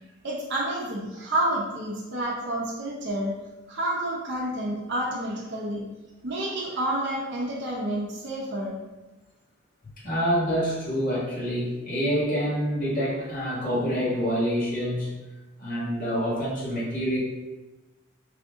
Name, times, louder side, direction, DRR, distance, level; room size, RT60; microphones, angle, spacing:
voice 1, 0.2-3.3 3.7-5.8 6.2-8.8, right 1 dB, 55° right, -4 dB, 0.7 m, -29 dB
voice 2, 10.0-15.1 15.6-17.2, equal, 40° left, -8 dB, 1.4 m, -26 dB
3.4 x 2.7 x 3.6 m, 1.1 s
head